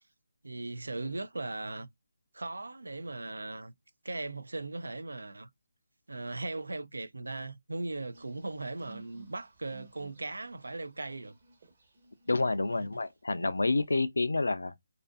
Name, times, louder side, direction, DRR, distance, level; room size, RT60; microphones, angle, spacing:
voice 1, 0.4-1.9 2.3-3.7 4.0-5.5 6.1-11.3, right 2 dB, 85° right, 0.3 m, -38 dB
sound 1, 8.1-13.0 13.4-13.8, right 5 dB, 50° right, 1.1 m, -58 dB
voice 2, 12.3-14.7, left 3 dB, 85° left, 0.4 m, -28 dB
2.6 x 2.4 x 2.3 m
figure-of-eight pair, 155°, 0 cm